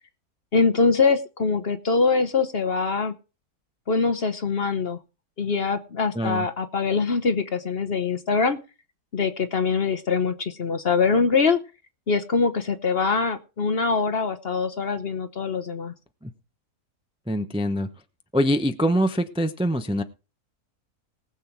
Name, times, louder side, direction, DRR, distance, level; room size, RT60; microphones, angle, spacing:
voice 1, 0.5-3.1 3.9-5.0 5.4-8.6 9.1-11.6 12.1-15.9, left 4 dB, 45° left, 10 dB, 1.1 m, -23 dB
voice 2, 6.1-6.5 16.2-16.3 17.3-17.9 18.3-20.0, equal, 5° right, 8 dB, 0.6 m, -24 dB
19.0 x 7.3 x 4.6 m, 0.32 s
omnidirectional pair, 1.6 m